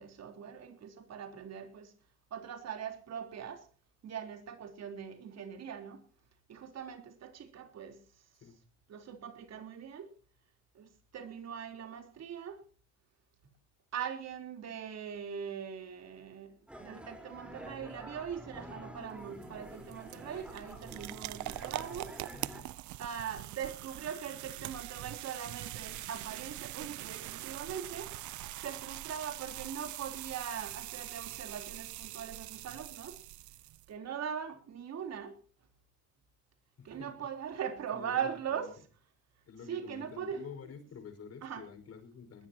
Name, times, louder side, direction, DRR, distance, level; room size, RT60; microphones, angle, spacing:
voice 1, 0.0-1.9 2.3-3.7 4.0-6.0 6.5-8.2 8.9-10.1 10.7-12.6 13.9-22.1 23.0-28.1 28.5-33.2 33.9-35.4 36.8-38.8 39.7-40.4 41.4-41.7, right 8 dB, 60° right, 3.8 m, -41 dB
sound 1, 16.7-22.6, equal, 5° right, 4.2 m, -48 dB
sound 2, 19.0-33.9, right 16 dB, 85° right, 0.7 m, -43 dB
voice 2, 36.8-37.3 37.9-38.7 39.5-42.5, left 6 dB, 55° left, 5.4 m, -49 dB
21.0 x 20.5 x 2.9 m
cardioid pair, 120°, 29 cm